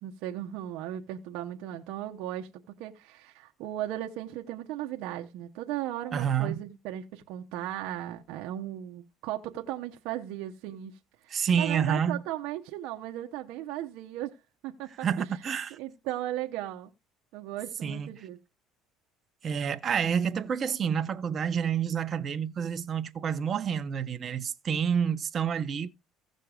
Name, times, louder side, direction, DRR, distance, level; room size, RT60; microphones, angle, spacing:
voice 1, 0.0-2.5 2.8-11.0 11.2-14.4 14.6-15.2 15.8-16.9 17.3-18.4, right 13 dB, 75° right, 0.9 m, -36 dB
voice 2, 6.1-6.6 11.3-12.2 15.0-15.8 17.8-18.1 19.4-25.9, right 7 dB, 40° right, 0.8 m, -28 dB
16.0 x 6.4 x 2.4 m
supercardioid pair, 105°, 0 cm